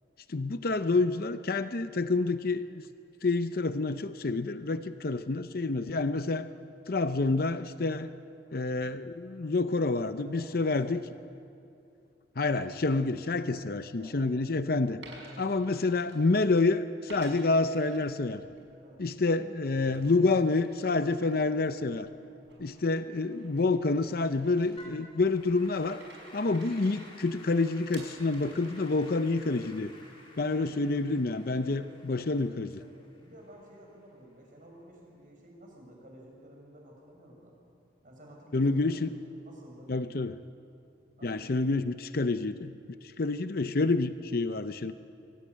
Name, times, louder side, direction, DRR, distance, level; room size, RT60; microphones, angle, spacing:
voice 1, 0.3-2.8 3.2-6.5 6.9-8.1 8.5-11.0 12.4-15.0 15.4-18.4 19.0-22.1 22.6-26.0 26.3-29.9 30.4-32.7 38.5-39.2 39.9-40.4 41.2-42.7 43.2-44.9, left 3 dB, 55° left, 11 dB, 0.7 m, -28 dB
voice 2, 10.2-10.8 13.1-13.2 13.5-13.6 13.9-14.5 15.2-15.5 18.8-19.0 22.5-22.7 31.3-32.4 32.8-37.5 38.0-39.9 41.2-42.0, right 1 dB, 50° right, 0 dB, 6.6 m, -53 dB
Coin (dropping), 15.0-16.6 17.1-18.7 19.0-29.5, right 2 dB, 85° right, 5.7 m, -54 dB
Applause / Keyboard (musical), 24.8-34.1, left 2 dB, 30° left, 3.8 m, -54 dB
23.5 x 16.5 x 9.6 m, 2.5 s
head